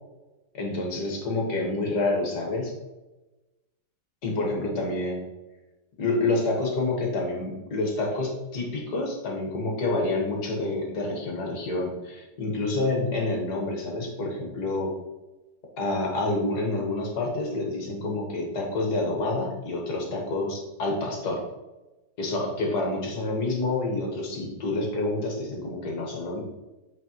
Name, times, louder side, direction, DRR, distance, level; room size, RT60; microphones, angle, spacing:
voice 1, 0.5-2.7 4.2-5.2 6.0-14.9 15.8-21.4 22.2-26.4, left 2 dB, 60° left, 0 dB, 1.9 m, -28 dB
8.2 x 4.6 x 3.0 m, 1.0 s
omnidirectional pair, 2.1 m